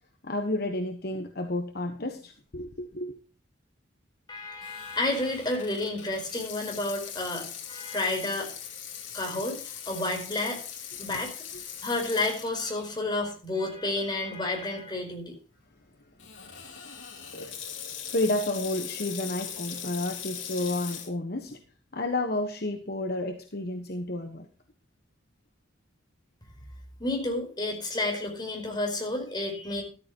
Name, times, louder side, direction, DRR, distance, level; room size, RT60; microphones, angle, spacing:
voice 1, 0.2-3.2 17.4-17.5 18.1-21.6 21.9-24.5, left 2 dB, 50° left, 1.3 m, -31 dB
voice 2, 4.3-8.5 9.1-10.6 11.0-11.3 11.8-15.4 27.0-29.8, left 2 dB, 20° left, 4.6 m, -30 dB
Water tap faucet / Sink (filling or washing), 4.6-13.0 13.5-13.6 14.3-14.6 16.2-21.1, left 8 dB, 70° left, 3.0 m, -40 dB
13.5 x 13.5 x 3.0 m
head